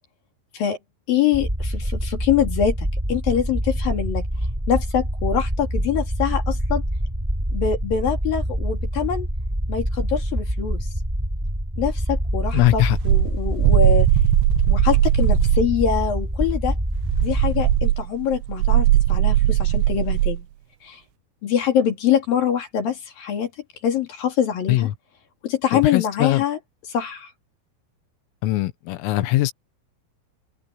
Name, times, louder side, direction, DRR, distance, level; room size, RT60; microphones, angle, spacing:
voice 1, 1.1-4.3 4.7-6.8 7.5-9.3 9.7-10.9 11.8-14.1 14.7-16.8 17.2-20.5 20.8-21.0 21.4-23.5 23.8-24.9 25.4-26.6 26.9-27.3, left 8 dB, 50° left, 3.8 m, -24 dB
sound 1, 1.3-17.9, equal, 5° right, 6.0 m, -25 dB
voice 2, 12.5-13.0 24.7-24.9 25.7-26.4 28.4-29.5, left 16 dB, 80° left, 4.0 m, -21 dB
sound 2, 12.5-15.7 16.9-20.4, right 15 dB, 80° right, 3.3 m, -19 dB
open air
omnidirectional pair, 5.9 m